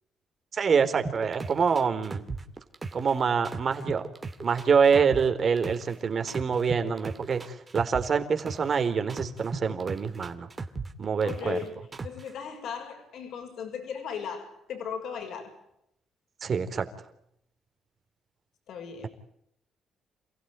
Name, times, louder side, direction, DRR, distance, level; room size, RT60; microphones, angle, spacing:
voice 1, 0.5-2.2 2.9-4.0 4.4-10.5 11.0-11.6 16.4-16.9, right 6 dB, 45° right, 8 dB, 4.0 m, -25 dB
sound 1, 1.0-3.1 3.4-5.9 6.3-8.8 9.1-11.6 11.9-12.3, right 4 dB, 30° right, 2.9 m, -36 dB
voice 2, 11.2-15.5 18.7-19.1, left 7 dB, 70° left, 5 dB, 6.3 m, -37 dB
28.5 x 17.0 x 9.1 m, 0.78 s
cardioid pair, 90°, 0 cm